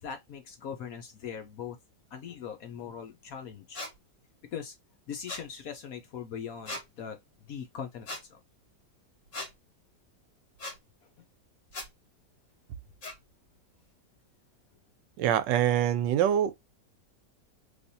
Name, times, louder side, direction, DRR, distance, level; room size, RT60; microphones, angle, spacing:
voice 1, 0.0-1.8 2.1-3.8 4.5-4.7 5.1-8.4, left 7 dB, 65° left, 1.0 m, -40 dB
sound 1, 3.8-3.9 5.3-5.5 6.7-6.8 8.1-8.2 9.3-9.5 10.6-10.8 11.7-11.9 13.0-13.2, left 2 dB, 45° left, 2.0 m, -38 dB
voice 2, 15.2-16.6, right 10 dB, 80° right, 1.2 m, -25 dB
3.3 x 3.0 x 2.7 m
omnidirectional pair, 2.0 m